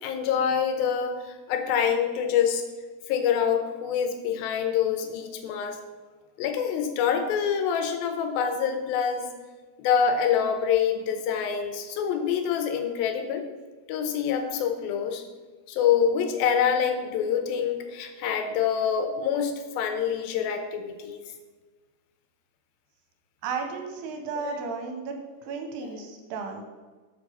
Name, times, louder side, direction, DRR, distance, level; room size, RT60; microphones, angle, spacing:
voice 1, 0.0-1.2 1.5-2.6 3.1-5.8 6.4-9.3 9.8-13.4 13.9-15.2 15.7-21.2 24.4-24.7 26.0-26.1, left 7 dB, 75° left, 6 dB, 2.3 m, -26 dB
voice 2, 23.4-25.2 25.4-26.6, right 5 dB, 80° right, 4 dB, 2.6 m, -33 dB
7.4 x 6.0 x 5.4 m, 1.3 s
omnidirectional pair, 5.1 m